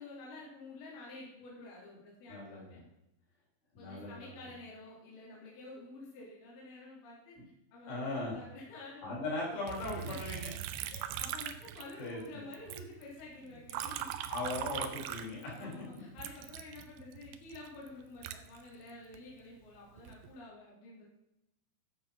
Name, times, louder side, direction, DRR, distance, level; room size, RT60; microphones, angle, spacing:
voice 1, 0.0-2.8 3.8-7.4 7.7-9.2 10.0-10.4 10.9-14.1 15.5-21.1, left 2 dB, 60° left, -5 dB, 5.3 m, -50 dB
voice 2, 2.3-2.8 3.7-4.4 7.4-7.5 7.9-8.4 9.0-10.5 12.0-12.4 14.3-15.8, left 2 dB, 90° left, -4 dB, 7.0 m, -39 dB
Liquid, 9.7-12.3 12.5-15.7 16.2-19.2 19.8-20.3, right 11 dB, 80° right, 3.0 m, -41 dB
12.0 x 8.1 x 5.8 m, 0.88 s
omnidirectional pair, 5.3 m